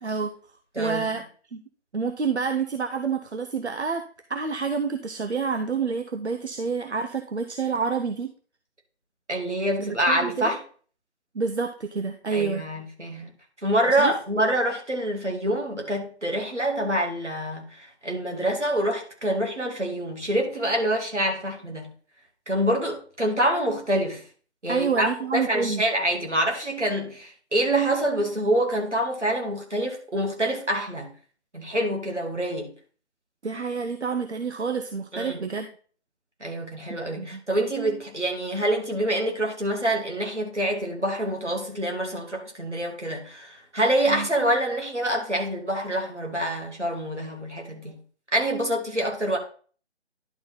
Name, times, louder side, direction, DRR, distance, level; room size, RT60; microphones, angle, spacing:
voice 1, 0.0-0.3 0.8-1.2 1.5-1.6 1.9-8.3 9.8-10.6 11.3-12.6 13.9-14.1 24.7-25.8 33.4-35.7 36.9-37.4 44.1-44.3, right 5 dB, 75° right, 0.8 m, -28 dB
voice 2, 0.8-1.2 9.3-10.6 12.3-13.3 13.6-21.9 22.5-24.2 24.6-31.1 31.5-32.7 35.1-35.4 36.4-48.0 48.3-49.4, right 1 dB, 90° right, 2.5 m, -26 dB
11.0 x 4.0 x 4.0 m
figure-of-eight pair, 145°, 34 cm